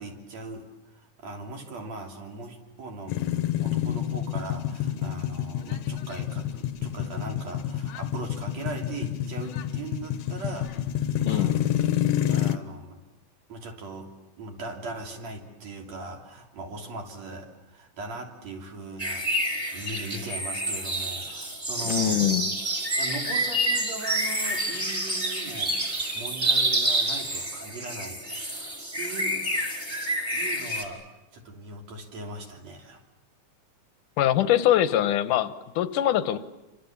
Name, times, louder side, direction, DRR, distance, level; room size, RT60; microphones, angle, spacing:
voice 1, 0.0-10.8 11.2-11.6 12.3-13.0 13.5-22.2 23.0-28.2 28.9-29.4 30.3-31.0 31.3-33.0, right 2 dB, 60° right, 2 dB, 4.3 m, -39 dB
sound 1, 3.1-12.6, left 11 dB, 65° left, 1.9 m, -28 dB
sound 2, 19.0-30.8, right 1 dB, 15° right, 4.3 m, -28 dB
voice 2, 21.8-22.5 34.2-36.4, left 12 dB, 90° left, 12 dB, 2.6 m, -23 dB
29.0 x 25.5 x 7.3 m, 1.0 s
omnidirectional pair, 3.5 m